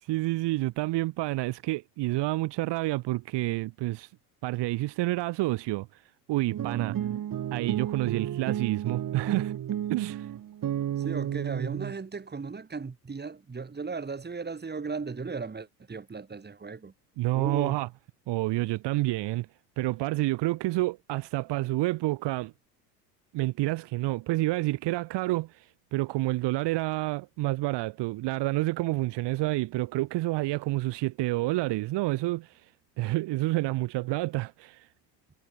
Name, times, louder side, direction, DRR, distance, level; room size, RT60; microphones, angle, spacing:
voice 1, 0.1-4.1 4.4-5.9 6.3-7.0 7.5-9.5 9.9-10.3 17.2-17.9 18.3-19.5 19.8-22.5 23.3-32.5 33.0-34.9, right 19 dB, 55° right, 4.2 m, -29 dB
sound 1, 6.5-11.9, right 10 dB, 40° right, 5.2 m, -32 dB
voice 2, 11.0-16.9 17.3-17.8, right 4 dB, 20° right, 6.9 m, -36 dB
hypercardioid pair, 85°, 48 cm